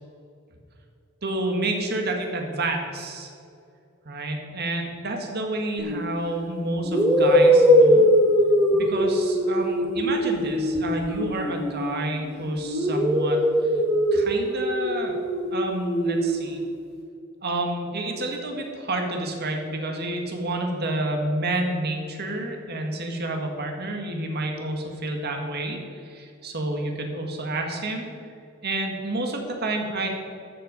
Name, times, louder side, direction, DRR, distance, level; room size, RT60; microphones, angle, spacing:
voice 1, 1.2-3.3 4.1-8.0 8.7-13.7 14.1-15.2 15.5-16.6 17.4-25.8 26.0-28.1 28.6-30.1, right 1 dB, 50° right, 3 dB, 1.8 m, -29 dB
sound 1, 5.8-6.0 6.8-12.2 12.6-16.5, equal, 10° right, 3.2 m, -21 dB
13.0 x 8.0 x 5.3 m, 2.4 s
head